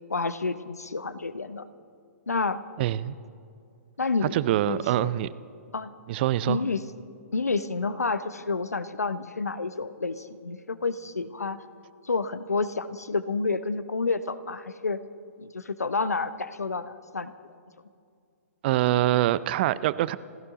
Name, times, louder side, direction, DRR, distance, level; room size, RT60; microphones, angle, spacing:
voice 1, 0.1-1.7 2.3-2.6 4.0-4.4 4.7-5.1 5.7-5.9 6.5-6.8 7.3-11.6 12.0-15.0 15.4-17.3, left 4 dB, 85° left, 14 dB, 0.8 m, -29 dB
voice 2, 2.8-3.2 4.2-5.3 6.1-6.6 18.6-20.2, right 14 dB, 40° right, 18 dB, 0.4 m, -24 dB
28.5 x 12.5 x 3.7 m, 2.3 s
figure-of-eight pair, 125°, 8 cm